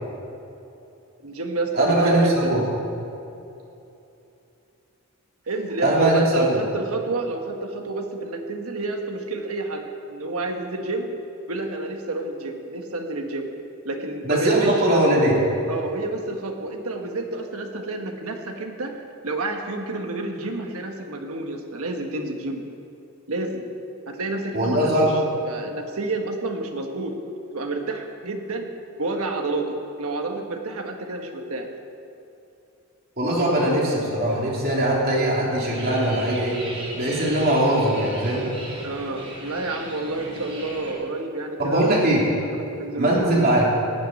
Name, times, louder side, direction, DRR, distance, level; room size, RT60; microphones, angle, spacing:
voice 1, 1.2-2.6 5.5-11.1 11.5-13.5 13.8-15.0 15.7-19.0 19.2-22.6 23.3-23.7 24.1-25.1 25.4-27.1 27.5-28.7 29.0-31.7 38.8-42.0 42.4-43.3, right 2 dB, 85° right, 3 dB, 1.5 m, -29 dB
voice 2, 1.7-2.6 5.8-6.6 14.2-15.4 24.5-25.1 33.2-36.6 36.9-38.5 41.6-42.2 43.0-43.7, right 1 dB, 45° right, -4 dB, 3.5 m, -20 dB
sound 1, 35.7-40.9, right 1 dB, 25° right, 3.5 m, -38 dB
14.5 x 7.2 x 10.0 m, 2.8 s
head